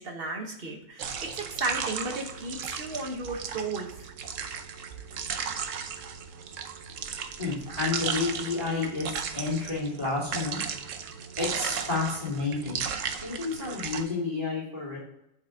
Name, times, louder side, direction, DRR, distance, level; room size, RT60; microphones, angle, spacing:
voice 1, 0.0-4.1, right 3 dB, 40° right, 2 dB, 1.0 m, -34 dB
sound 1, 1.0-14.0, right 7 dB, 65° right, 0.7 m, -35 dB
voice 2, 7.4-9.1 9.3-10.6 11.4-12.8 13.2-15.0, left 4 dB, 20° left, -5 dB, 2.3 m, -30 dB
7.8 x 4.6 x 3.6 m, 0.84 s
omnidirectional pair, 2.1 m